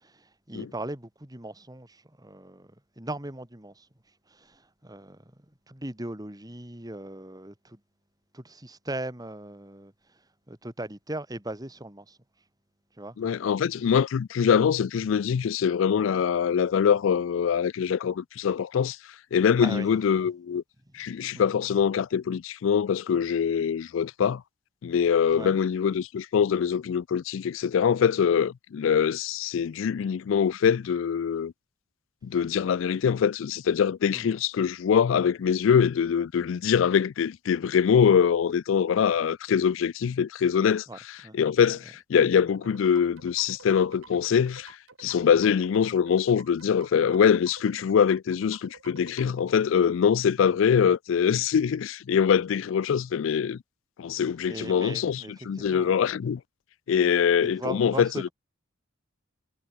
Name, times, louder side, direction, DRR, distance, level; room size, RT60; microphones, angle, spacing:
voice 1, 0.0-3.9 4.3-5.2 5.7-7.8 8.3-9.9 10.5-12.2 13.0-13.2 19.6-19.9 21.3-21.5 25.3-25.6 34.1-34.3 40.9-41.4 41.7-41.8 54.5-56.0 57.5-58.3, right 1 dB, 20° right, 2.5 m, -39 dB
voice 2, 13.2-19.0 19.3-20.6 20.9-24.4 24.8-31.5 32.2-53.6 54.0-56.4 56.9-58.3, left 7 dB, 70° left, 0.4 m, -24 dB
sound 1, 42.5-49.4, right 4 dB, 80° right, 1.9 m, -50 dB
head